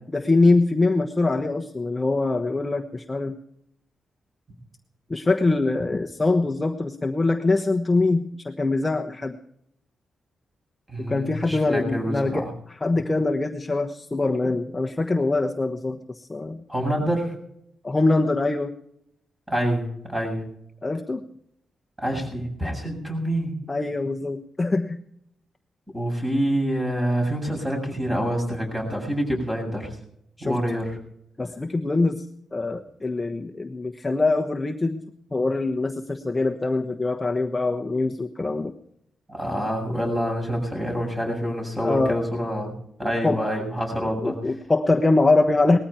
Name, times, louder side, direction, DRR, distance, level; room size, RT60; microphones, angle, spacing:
voice 1, 0.1-3.4 5.1-9.4 11.1-16.6 17.8-18.7 20.8-21.3 23.7-25.0 30.4-30.6 31.4-35.0 35.3-38.7 41.8-42.2 43.0-43.4 44.2-45.8, left 3 dB, 20° left, 2 dB, 1.2 m, -23 dB
voice 2, 10.9-12.5 16.7-17.3 19.5-20.4 22.0-23.5 25.9-30.0 30.4-30.9 39.3-42.7 43.0-44.3, equal, 15° right, 1 dB, 7.4 m, -26 dB
20.0 x 14.0 x 4.5 m, 0.73 s
cardioid pair, 125°, 0 cm